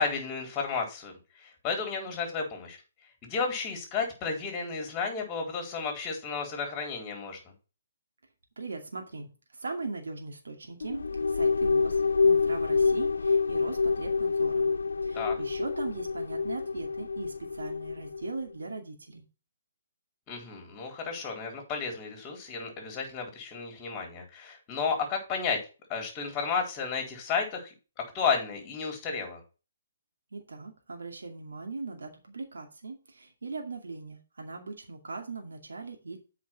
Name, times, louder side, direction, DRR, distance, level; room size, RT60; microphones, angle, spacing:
voice 1, 0.0-2.8 3.2-7.5 15.1-15.3 20.3-25.6 25.9-29.4, left 5 dB, 20° left, 2 dB, 4.1 m, -32 dB
voice 2, 8.6-12.0 12.2-14.7 15.0-19.2 30.3-36.2, right 3 dB, 85° right, 2 dB, 2.3 m, -39 dB
sound 1, 10.8-18.4, left 4 dB, 85° left, 0.3 m, -27 dB
8.5 x 5.0 x 5.9 m, 0.32 s
hypercardioid pair, 145°, 0 cm